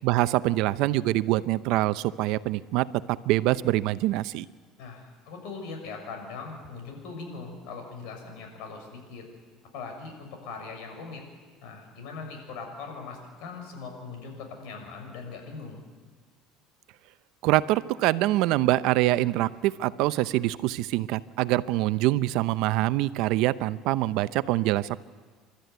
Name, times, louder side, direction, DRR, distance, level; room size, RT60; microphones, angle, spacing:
voice 1, 0.0-4.4 17.4-25.0, right 16 dB, 70° right, 15 dB, 0.7 m, -25 dB
voice 2, 4.8-9.2 9.7-11.2 11.6-15.9, left 4 dB, 75° left, 3 dB, 6.6 m, -40 dB
29.0 x 13.0 x 9.3 m, 1.5 s
cardioid pair, 120°, 0 cm